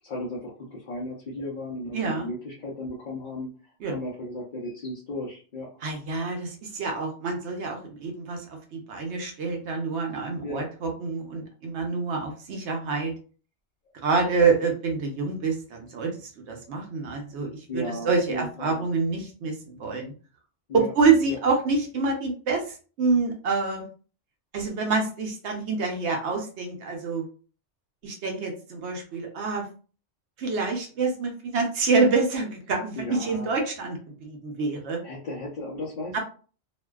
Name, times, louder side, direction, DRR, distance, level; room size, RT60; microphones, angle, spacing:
voice 1, 0.0-3.5 3.9-5.7 10.4-10.6 17.7-18.8 20.7-20.9 21.3-21.4 33.0-33.5 35.0-36.2, left 1 dB, 50° left, -4 dB, 0.6 m, -35 dB
voice 2, 1.9-2.3 3.8-3.9 5.8-13.1 14.0-20.1 20.7-23.9 24.5-27.3 28.0-29.7 30.4-35.0 36.1-36.2, right 4 dB, 75° right, 2 dB, 0.9 m, -27 dB
2.5 x 2.1 x 2.2 m, 0.38 s
omnidirectional pair, 1.2 m